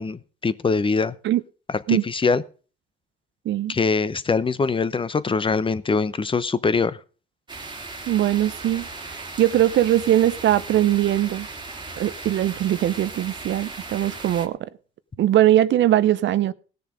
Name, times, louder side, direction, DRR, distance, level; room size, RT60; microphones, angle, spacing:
voice 1, 0.0-1.1 1.9-2.4 3.7-7.0, left 4 dB, 25° left, 0.8 m, -23 dB
voice 2, 3.4-3.7 8.1-11.5 12.0-14.6 15.2-16.5, right 12 dB, 70° right, 0.7 m, -21 dB
sound 1, 7.5-14.5, right 3 dB, 25° right, 1.9 m, -37 dB
18.0 x 6.7 x 5.1 m
cardioid pair, 90°, 20 cm